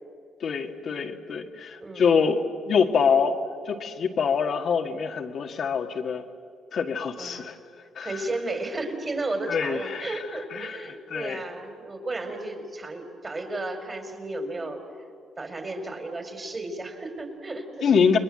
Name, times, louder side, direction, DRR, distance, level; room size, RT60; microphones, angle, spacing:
voice 1, 0.4-3.4 3.7-6.2 6.7-7.6 8.0-8.1 9.5-10.2 10.5-11.4 17.8-18.2, left 6 dB, 60° left, 4 dB, 1.8 m, -25 dB
voice 2, 1.8-2.4 7.2-7.5 8.0-14.8 15.4-17.9, right 2 dB, 35° right, 5 dB, 5.0 m, -34 dB
30.0 x 22.0 x 7.7 m, 2.3 s
hypercardioid pair, 50°, 0 cm